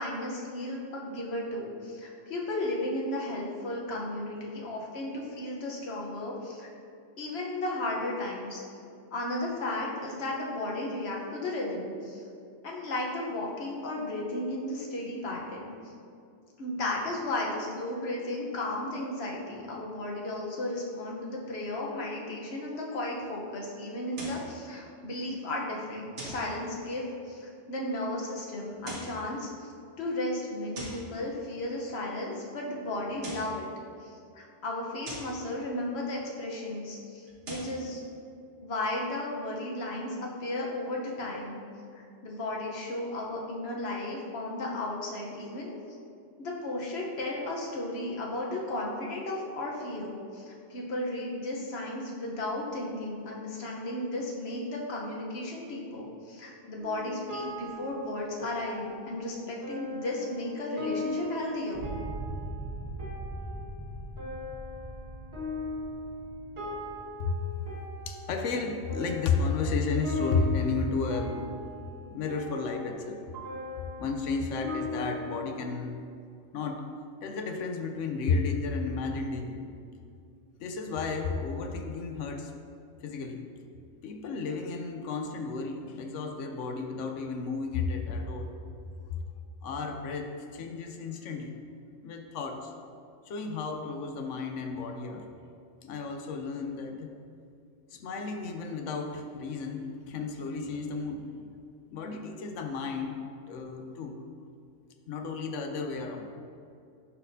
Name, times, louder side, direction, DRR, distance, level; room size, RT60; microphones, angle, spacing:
voice 1, 0.0-6.7 7.2-8.6 9.1-12.2 12.6-15.7 16.6-29.7 30.0-33.7 34.0-38.0 38.6-41.6 41.9-45.8 46.4-61.8, left 1 dB, 60° left, -2 dB, 1.2 m, -34 dB
sound 1, 24.1-24.5 26.2-26.5 28.7-29.2 30.7-31.1 33.0-33.6 35.0-35.4 37.3-37.8, right 1 dB, 75° right, 1.4 m, -41 dB
sound 2, 56.8-75.4, left 2 dB, 55° right, 1.6 m, -39 dB
sound 3, 61.7-67.0, right 1 dB, 40° right, 1.1 m, -40 dB
voice 2, 68.1-71.5 72.1-73.2 74.0-76.0 76.5-76.8 77.2-79.7 80.6-82.5 83.0-83.4 84.0-88.5 89.6-91.5 92.0-92.7 93.3-95.3 95.8-97.1 97.9-101.4 101.9-104.2 105.1-106.3, left 4 dB, 80° left, 4 dB, 1.0 m, -32 dB
11.0 x 4.1 x 2.7 m, 2.5 s
omnidirectional pair, 1.2 m